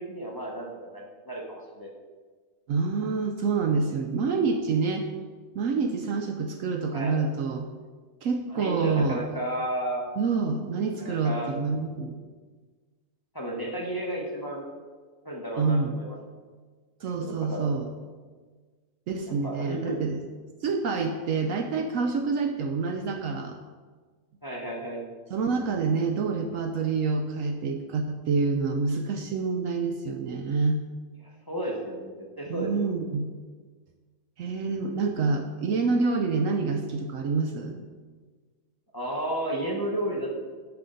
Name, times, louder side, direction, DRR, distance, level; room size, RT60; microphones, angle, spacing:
voice 1, 0.0-1.9 6.9-7.2 8.5-10.0 11.0-11.6 13.3-14.7 15.2-16.2 17.0-17.7 19.2-20.0 24.4-25.0 31.5-32.7 38.9-40.3, right 1 dB, 15° left, -2 dB, 1.0 m, -33 dB
voice 2, 2.7-5.1 5.5-7.7 8.2-9.2 10.2-12.2 15.6-15.9 17.0-17.9 19.1-20.2 20.6-23.6 25.3-30.8 32.5-33.3 34.4-37.8, right 4 dB, 65° right, 5 dB, 0.9 m, -27 dB
10.0 x 5.9 x 3.9 m, 1.5 s
omnidirectional pair, 1.6 m